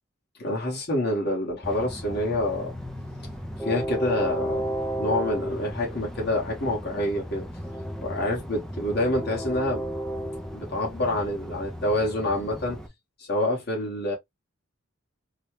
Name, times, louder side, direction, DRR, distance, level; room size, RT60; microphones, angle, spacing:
voice 1, 0.4-2.7 3.6-4.7 5.0-7.5 8.0-9.8 10.5-12.8 13.2-14.1, left 1 dB, 50° left, 1.5 m, -27 dB
Train, 1.6-12.9, equal, ahead, 0.4 m, -34 dB
4.0 x 2.2 x 3.1 m
head